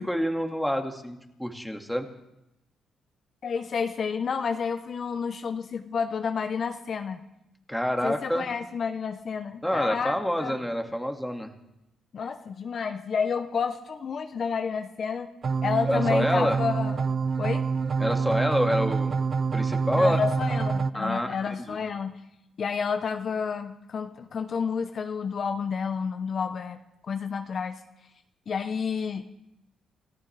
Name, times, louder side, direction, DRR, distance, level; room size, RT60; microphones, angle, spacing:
voice 1, 0.0-2.1 7.7-8.5 9.6-11.5 15.9-16.6 18.0-19.2 19.5-20.2 20.9-21.8, equal, ahead, 4 dB, 2.0 m, -27 dB
voice 2, 3.4-7.2 8.0-10.2 10.4-10.6 12.1-15.3 15.6-17.0 17.4-17.6 20.0-22.2 22.6-26.8 27.0-27.8 28.5-29.2, left 6 dB, 55° left, 7 dB, 0.8 m, -30 dB
sound 1, 15.4-20.9, right 5 dB, 50° right, 0.5 m, -26 dB
28.5 x 14.0 x 3.4 m, 0.88 s
cardioid pair, 70°, 0 cm